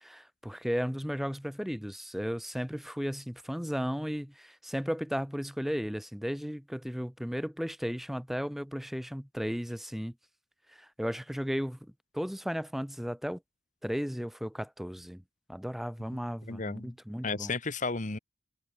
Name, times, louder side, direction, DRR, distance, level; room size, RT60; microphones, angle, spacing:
voice 1, 0.0-10.1 10.7-13.4 13.8-15.2 15.5-17.5, equal, ahead, 0.6 m, -35 dB
voice 2, 16.5-16.9 17.2-18.2, left 4 dB, 40° left, 1.2 m, -33 dB
head